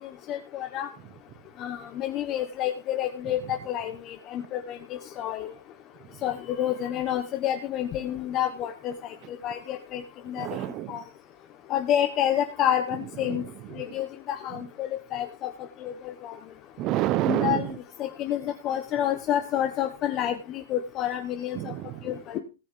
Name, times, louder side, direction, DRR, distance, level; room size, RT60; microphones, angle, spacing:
voice 1, 0.3-0.9 1.6-5.5 6.2-10.5 10.9-11.0 11.7-13.4 13.8-15.5 15.8-16.3 17.3-17.7 18.0-21.6 22.0-22.4, left 11 dB, 30° left, 5 dB, 1.2 m, -29 dB
voice 2, 10.4-11.0 13.3-13.4 13.7-13.8 16.8-17.8 21.5-22.1, right 15 dB, 35° right, 19 dB, 0.8 m, -28 dB
18.0 x 6.2 x 3.9 m, 0.32 s
hypercardioid pair, 145°, 0 cm